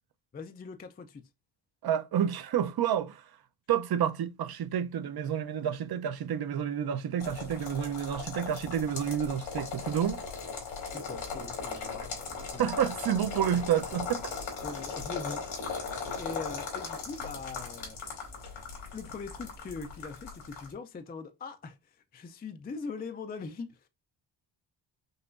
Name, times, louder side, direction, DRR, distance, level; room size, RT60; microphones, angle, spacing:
voice 1, 0.3-1.2 10.8-12.8 14.6-15.8 16.2-18.0 18.9-23.9, left 4 dB, 20° left, 0.3 m, -42 dB
voice 2, 1.8-3.2 3.7-10.2 12.6-14.3, right 9 dB, 50° right, 0.6 m, -29 dB
sound 1, 7.2-20.7, left 5 dB, 90° left, 2.6 m, -38 dB
5.5 x 2.9 x 2.4 m
wide cardioid pair, 155°, 47 cm